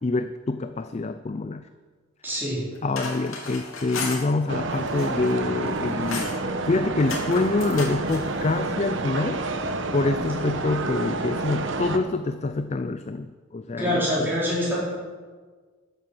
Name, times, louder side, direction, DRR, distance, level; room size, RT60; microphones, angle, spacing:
voice 1, 0.0-1.7 2.8-6.3 6.7-9.4 9.9-14.3, left 3 dB, 30° left, 10 dB, 0.4 m, -26 dB
voice 2, 2.2-2.6 13.8-14.8, equal, 10° right, -8 dB, 4.5 m, -25 dB
sound 1, 2.7-4.2 4.7-5.4 5.7-6.4 7.0-8.2, left 3 dB, 85° left, 3.0 m, -34 dB
sound 2, 4.5-12.0, right 3 dB, 60° right, 1.0 m, -29 dB
13.0 x 9.6 x 7.2 m, 1.5 s
head